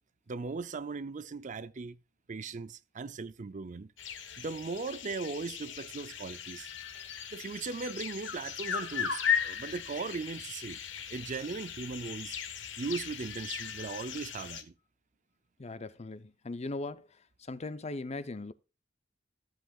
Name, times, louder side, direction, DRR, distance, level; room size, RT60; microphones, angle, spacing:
voice 1, 0.3-2.0 2.3-3.9 4.4-6.7 7.3-10.8 11.1-14.7, right 4 dB, 40° right, 0.5 m, -38 dB
sound 1, 4.0-14.6, left 8 dB, 70° left, 1.4 m, -37 dB
voice 2, 15.6-17.1 17.5-18.5, left 2 dB, 35° left, 0.6 m, -39 dB
14.5 x 7.7 x 2.4 m
head